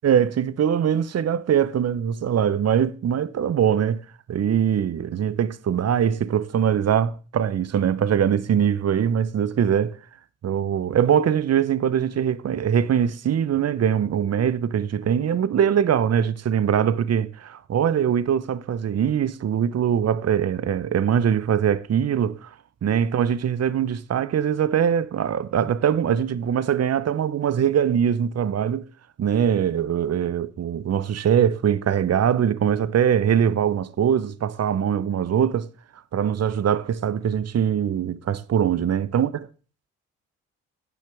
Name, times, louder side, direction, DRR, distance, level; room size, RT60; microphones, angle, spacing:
voice 1, 0.0-4.0 4.3-10.0 10.4-22.5 22.8-28.8 29.2-35.7 36.1-39.3, right 8 dB, 45° right, 1.0 m, -22 dB
15.0 x 10.5 x 3.6 m
hypercardioid pair, 45°, 35 cm